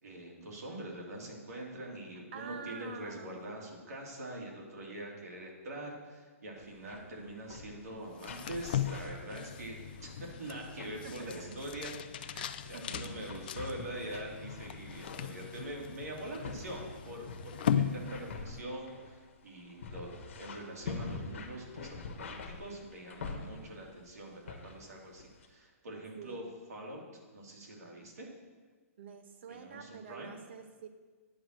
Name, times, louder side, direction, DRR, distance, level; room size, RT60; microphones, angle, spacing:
voice 1, 0.0-26.4 26.7-27.0 27.3-28.3 29.5-30.3, right 1 dB, 85° right, -1 dB, 2.9 m, -44 dB
voice 2, 2.3-3.4 11.0-11.6 12.3-13.1 26.2-26.5 29.0-30.9, right 6 dB, 45° right, 8 dB, 0.9 m, -47 dB
sound 1, 6.6-7.0 7.3-8.0 8.2-8.6 8.8-10.2 10.6-10.9 11.4-11.7 12.3-23.9 24.5-24.9 25.2-25.5, left 4 dB, 55° left, 1.2 m, -46 dB
sound 2, 8.1-18.7, left 9 dB, 35° left, 0.3 m, -38 dB
9.5 x 4.7 x 7.6 m, 1.4 s
hypercardioid pair, 175°, 8 cm